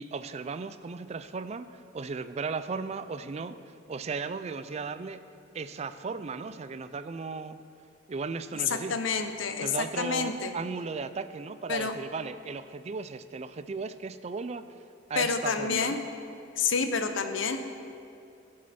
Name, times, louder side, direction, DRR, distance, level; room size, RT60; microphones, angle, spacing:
voice 1, 0.0-5.3 5.5-7.6 8.1-9.0 9.6-14.6 15.1-16.0, right 4 dB, 35° right, 12 dB, 0.4 m, -36 dB
voice 2, 8.7-9.7 10.0-10.5 11.7-11.9 15.2-16.0 16.6-17.6, left 5 dB, 80° left, 8 dB, 0.8 m, -28 dB
15.5 x 7.6 x 4.3 m, 2.6 s
head